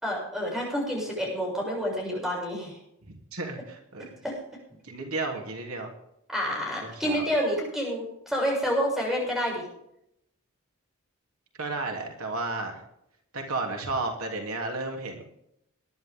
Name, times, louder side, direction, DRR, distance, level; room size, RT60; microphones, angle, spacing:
voice 1, 0.0-2.8 4.2-4.3 6.3-9.6, equal, ahead, -2 dB, 6.9 m, -28 dB
voice 2, 3.1-4.2 4.8-5.9 6.8-7.2 11.6-12.8 13.3-15.2, right 2 dB, 90° right, 2 dB, 3.0 m, -33 dB
21.0 x 11.5 x 3.7 m, 0.77 s
head